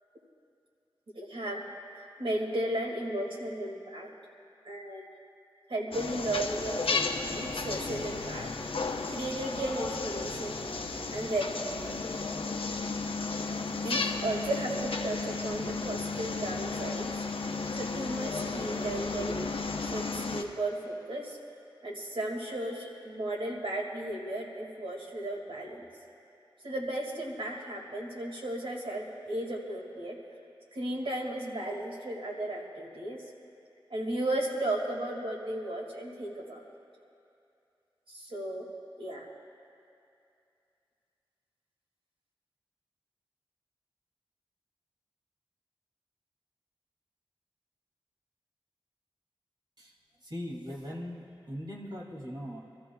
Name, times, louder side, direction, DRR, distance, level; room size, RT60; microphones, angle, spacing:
voice 1, 1.1-1.7 2.2-4.1 4.6-5.1 5.7-8.5 9.1-10.6 11.1-11.5 13.4-13.5 13.8-17.2 17.7-19.4 19.9-21.4 21.8-25.9 26.6-30.2 30.7-33.3 33.9-36.6 38.1-38.7 39.0-39.3, right 1 dB, 90° right, -1 dB, 2.1 m, -35 dB
sound 1, 5.9-20.4, left 3 dB, 85° left, 0.8 m, -34 dB
voice 2, 50.2-52.6, equal, 55° right, -3 dB, 2.6 m, -40 dB
27.0 x 14.0 x 2.3 m, 2.6 s
wide cardioid pair, 50°, 9 cm